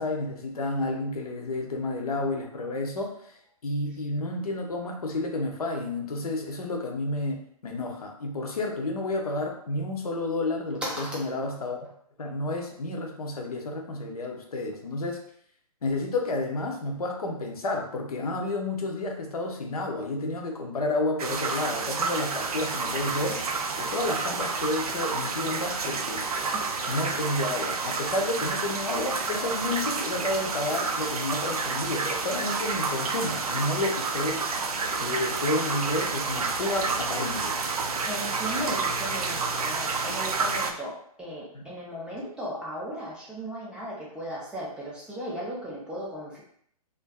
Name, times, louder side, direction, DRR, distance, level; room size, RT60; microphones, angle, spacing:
voice 1, 0.0-3.3 3.6-11.8 12.2-15.2 15.8-26.4 26.9-37.6 41.5-41.6, left 2 dB, 70° left, 1 dB, 0.6 m, -31 dB
voice 2, 10.8-11.3 26.5-26.6 38.1-46.4, equal, 5° right, -6 dB, 0.4 m, -36 dB
sound 1, 21.2-40.7, right 4 dB, 70° right, 0.4 m, -29 dB
2.5 x 2.3 x 2.2 m, 0.65 s
figure-of-eight pair, 120°, 20 cm